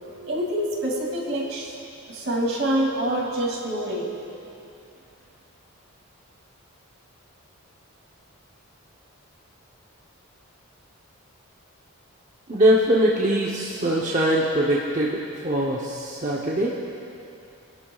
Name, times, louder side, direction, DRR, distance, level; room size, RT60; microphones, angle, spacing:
voice 1, 0.3-1.8 2.1-4.1, right 1 dB, 60° right, -2 dB, 2.6 m, -26 dB
voice 2, 12.5-16.7, right 1 dB, 35° right, -4 dB, 0.8 m, -22 dB
27.5 x 11.5 x 2.4 m, 2.6 s
head